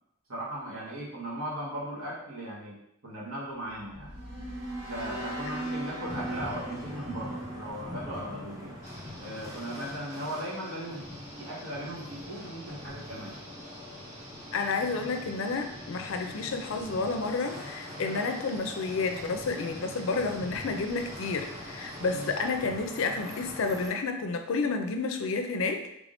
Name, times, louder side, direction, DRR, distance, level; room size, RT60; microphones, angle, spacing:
voice 1, 0.3-4.1 4.8-8.8 9.2-11.1 11.4-13.4 17.9-18.2 22.1-22.4, right 1 dB, 80° right, -6 dB, 1.3 m, -38 dB
sound 1, 3.6-8.9, right 1 dB, 55° right, 0.7 m, -39 dB
sound 2, 6.1-23.9, left 1 dB, 15° right, 0.6 m, -43 dB
sound 3, 8.8-22.5, right 1 dB, 35° right, 1.3 m, -50 dB
voice 2, 14.5-26.0, left 4 dB, 65° left, 5 dB, 0.4 m, -30 dB
3.4 x 3.4 x 2.6 m, 0.80 s
head